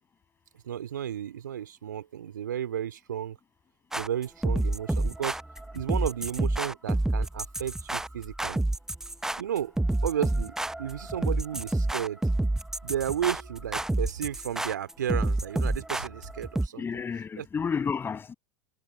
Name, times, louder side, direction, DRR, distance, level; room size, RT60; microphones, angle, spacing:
voice 1, 0.6-3.4 3.9-5.4 5.7-8.6 9.4-9.7 10.0-12.2 12.8-16.9 17.4-17.5, right 10 dB, 75° right, 2.4 m, -33 dB
sound 1, 3.9-16.7, right 1 dB, 5° right, 0.8 m, -29 dB
voice 2, 16.7-18.3, left 6 dB, 20° left, 7.8 m, -31 dB
hypercardioid pair, 90°, 10 cm